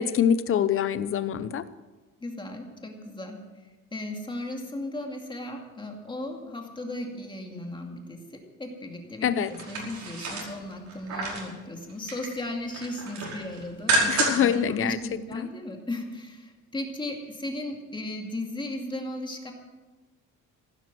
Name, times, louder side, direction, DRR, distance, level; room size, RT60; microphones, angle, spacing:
voice 1, 0.0-1.7 9.2-9.5 14.1-15.0 15.3-15.5, left 8 dB, 40° left, 14 dB, 0.8 m, -24 dB
voice 2, 2.2-3.4 3.9-9.3 9.7-19.5, left 1 dB, 15° left, 2 dB, 2.3 m, -36 dB
sound 1, 9.4-11.5 11.9-12.4 12.7-14.6 14.9-15.0, right 2 dB, 60° right, 5.0 m, -29 dB
15.0 x 12.5 x 6.1 m, 1.3 s
cardioid pair, 145°, 32 cm